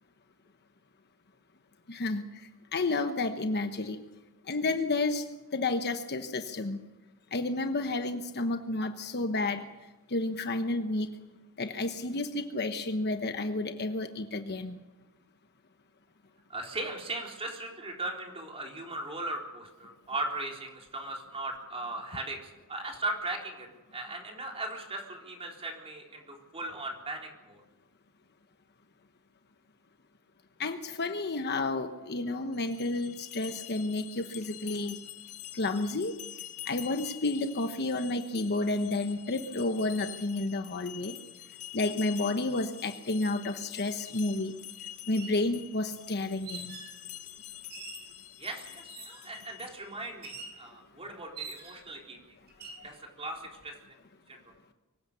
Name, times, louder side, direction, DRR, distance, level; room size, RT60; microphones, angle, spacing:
voice 1, 1.9-2.2 2.7-4.0 4.5-5.3 5.5-6.8 7.3-9.6 10.1-11.1 11.6-14.8 30.6-35.0 35.5-36.1 36.7-41.2 41.7-44.5 45.1-46.8 52.8-52.9, left 2 dB, 50° left, 7 dB, 1.1 m, -31 dB
voice 2, 16.5-27.6 48.4-52.2 52.8-54.0 54.3-54.4, right 2 dB, 25° right, 1 dB, 3.9 m, -38 dB
sound 1, 32.5-50.0, left 13 dB, 85° left, 1.6 m, -46 dB
sound 2, 44.1-44.2 45.0-45.4 46.4-47.0 47.7-48.1 48.9-49.3 50.2-50.6 51.4-51.9 52.5-52.8, right 4 dB, 50° right, 5.5 m, -44 dB
24.5 x 16.5 x 6.8 m, 1.1 s
head